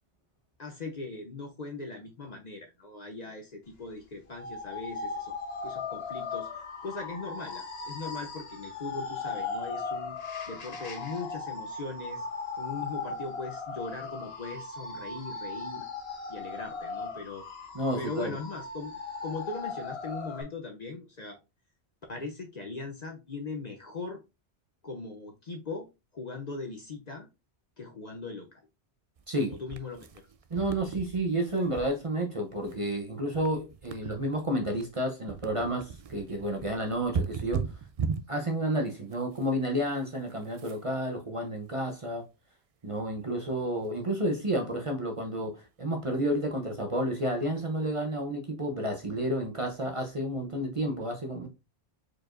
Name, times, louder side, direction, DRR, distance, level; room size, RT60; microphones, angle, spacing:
voice 1, 0.6-5.3 5.6-10.2 10.5-12.3 12.6-15.9 16.3-17.5 18.0-18.9 19.2-21.4 22.1-24.2 24.8-27.3 27.8-28.6 29.4-30.1, left 3 dB, 45° left, 0.7 m, -40 dB
sound 1, 4.3-20.4, left 4 dB, 65° left, 1.2 m, -38 dB
voice 2, 17.7-18.4 29.3-29.6 30.5-37.7 38.3-42.2 42.8-51.5, right 1 dB, 35° right, 0.8 m, -31 dB
sound 2, 29.2-38.3 39.1-39.5 39.9-40.0 40.3-41.1, right 6 dB, 60° right, 0.3 m, -38 dB
4.7 x 4.4 x 2.5 m
omnidirectional pair, 1.2 m